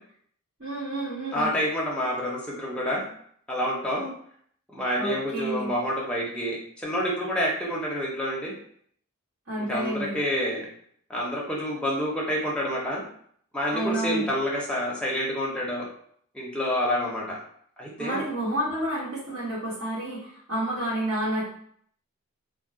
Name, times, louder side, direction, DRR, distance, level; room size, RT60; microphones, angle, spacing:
voice 1, 0.6-1.5 5.0-5.7 9.5-10.2 13.7-14.3 18.0-21.4, right 1 dB, 70° right, -12 dB, 1.2 m, -30 dB
voice 2, 1.3-3.0 3.5-4.1 4.7-8.5 9.6-10.7 11.1-13.0 13.5-15.9 16.3-17.4 17.8-18.3, equal, 5° left, -4 dB, 0.6 m, -28 dB
2.3 x 2.1 x 3.7 m, 0.63 s
head